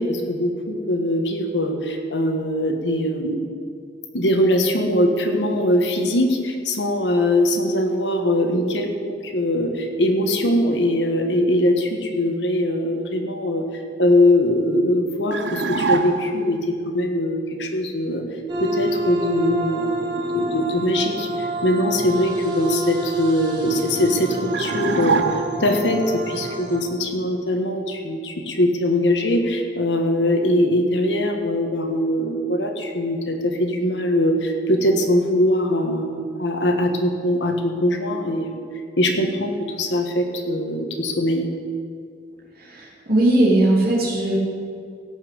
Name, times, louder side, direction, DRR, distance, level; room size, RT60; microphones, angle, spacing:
voice 1, 0.0-3.4 4.1-13.6 14.0-16.6 16.8-18.2 18.6-38.6 39.0-41.4, left 1 dB, 75° left, 4 dB, 1.6 m, -21 dB
sound 1, 15.3-16.5 24.5-25.8, right 4 dB, 85° right, 0.7 m, -24 dB
sound 2, 18.5-26.8, equal, 25° right, 2.2 m, -27 dB
voice 2, 42.6-44.4, right 1 dB, 55° right, -5 dB, 2.8 m, -19 dB
17.0 x 5.9 x 7.8 m, 2.4 s
head